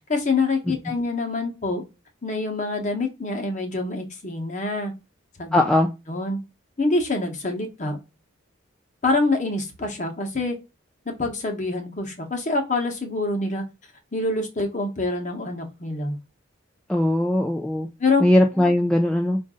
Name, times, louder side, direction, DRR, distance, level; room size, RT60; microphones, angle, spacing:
voice 1, 0.1-1.8 2.2-4.9 5.4-5.6 6.1-6.4 6.8-8.0 9.0-10.6 11.1-13.6 14.1-16.2 18.0-18.2, left 3 dB, 35° left, 4 dB, 1.0 m, -25 dB
voice 2, 5.5-5.9 16.9-17.9 18.2-19.4, left 1 dB, 5° left, 2 dB, 0.3 m, -19 dB
5.1 x 2.6 x 3.7 m, 0.26 s
head